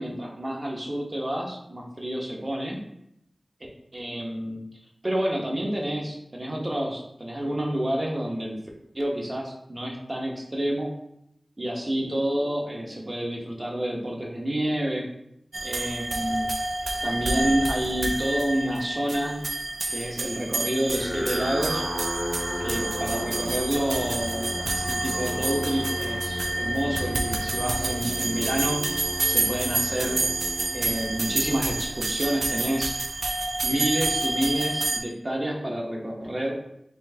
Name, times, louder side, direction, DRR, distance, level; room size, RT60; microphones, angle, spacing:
voice 1, 0.0-2.8 3.9-4.6 5.0-8.6 8.9-10.9 11.6-15.1 15.6-16.5 17.0-19.4 19.9-21.9 22.6-28.8 29.2-30.2 30.7-33.0 33.6-36.5, right 1 dB, 35° right, -1 dB, 0.9 m, -29 dB
sound 1, 15.5-35.0, right 2 dB, 85° right, 0.4 m, -29 dB
sound 2, 20.9-32.3, left 1 dB, ahead, 0.7 m, -34 dB
4.3 x 3.1 x 2.8 m, 0.80 s
cardioid pair, 45°, 0 cm